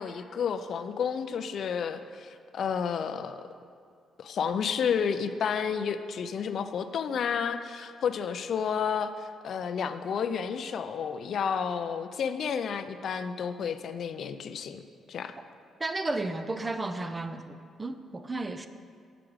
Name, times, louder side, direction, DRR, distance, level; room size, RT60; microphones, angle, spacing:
voice 1, 0.0-3.5 4.2-14.8 15.1-15.4, left 7 dB, 60° left, 10 dB, 0.3 m, -31 dB
voice 2, 15.8-18.7, right 2 dB, 20° right, 9 dB, 0.4 m, -33 dB
5.8 x 4.9 x 6.4 m, 2.2 s
cardioid pair, 90°, 0 cm